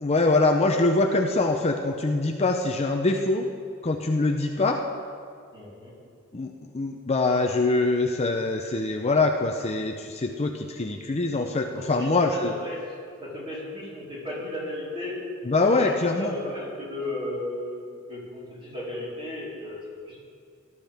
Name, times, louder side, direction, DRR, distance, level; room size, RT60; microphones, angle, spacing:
voice 1, 0.0-3.5 3.8-4.8 6.3-12.5 15.5-16.3, left 2 dB, 30° left, 3 dB, 0.6 m, -24 dB
voice 2, 5.5-5.9 11.7-12.9 13.2-15.2 15.7-20.2, left 1 dB, 25° right, -7 dB, 4.1 m, -35 dB
18.0 x 12.0 x 3.5 m, 2.2 s
head